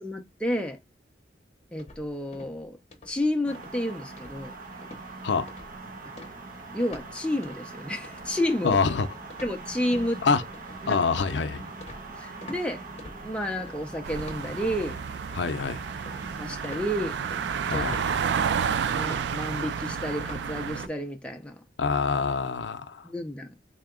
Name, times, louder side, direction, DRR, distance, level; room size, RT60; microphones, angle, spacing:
voice 1, 0.0-0.8 1.7-2.8 3.1-4.5 6.0-6.1 6.7-8.8 9.4-10.2 10.9-11.0 12.2-12.8 13.2-15.0 16.4-17.2 17.7-17.9 18.8-21.6 23.0-23.5, left 1 dB, 5° left, 0.6 m, -30 dB
sound 1, 1.8-2.6 2.9-3.2 3.5-3.8 4.2-4.6 4.8-5.1 5.5-5.8 6.2-7.1 7.4-7.7 8.0-12.6 13.0-13.8 14.2-15.0 15.5-16.3 16.6-20.9, left 1 dB, 35° left, 0.8 m, -46 dB
sound 2, 3.5-20.7, right 3 dB, 50° right, 0.9 m, -42 dB
voice 2, 8.6-9.1 10.2-10.4 10.9-11.7 15.3-15.8 17.7-18.2 21.8-23.0, left 5 dB, 80° left, 0.5 m, -25 dB
sound 3, 14.0-20.9, right 7 dB, 70° right, 0.3 m, -30 dB
3.4 x 2.8 x 3.7 m
head